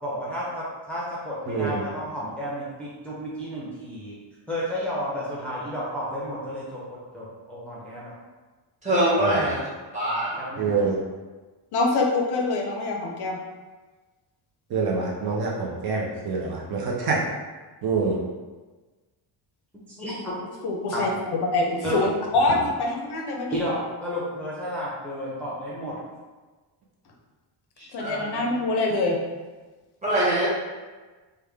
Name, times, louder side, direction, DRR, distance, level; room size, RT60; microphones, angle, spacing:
voice 1, 0.0-4.1 4.5-6.8 7.1-8.1 10.4-10.8 19.9-20.4 20.9-21.0 21.8-22.0 23.5-26.0, equal, 5° left, -8 dB, 0.6 m, -32 dB
voice 2, 1.5-1.8 9.2-9.5 10.6-11.0 14.7-17.2 17.8-18.2, right 4 dB, 50° right, -2 dB, 0.6 m, -26 dB
voice 3, 8.8-9.6 9.9-10.4 27.8-28.4 30.0-30.5, right 1 dB, 15° right, -8 dB, 1.2 m, -24 dB
voice 4, 11.7-13.4 20.6-23.5 27.9-29.2, left 2 dB, 55° left, 1 dB, 0.6 m, -25 dB
3.4 x 2.2 x 3.4 m, 1.3 s
cardioid pair, 130°, 47 cm